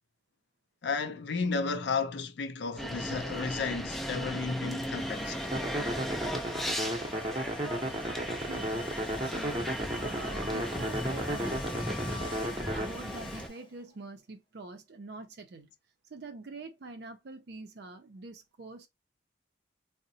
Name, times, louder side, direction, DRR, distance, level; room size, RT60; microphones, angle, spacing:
voice 1, 0.8-5.4, left 4 dB, 65° left, 0.5 m, -33 dB
sound 1, 2.8-13.5, equal, ahead, 0.4 m, -36 dB
Domestic sounds home sounds, 4.8-14.0, left 4 dB, 25° left, 0.8 m, -48 dB
sound 2, 5.5-12.9, right 1 dB, 25° right, 0.7 m, -34 dB
voice 2, 8.4-8.7 9.2-11.7 12.0-15.7 16.1-18.9, right 3 dB, 55° right, 0.5 m, -45 dB
3.8 x 2.1 x 2.6 m
head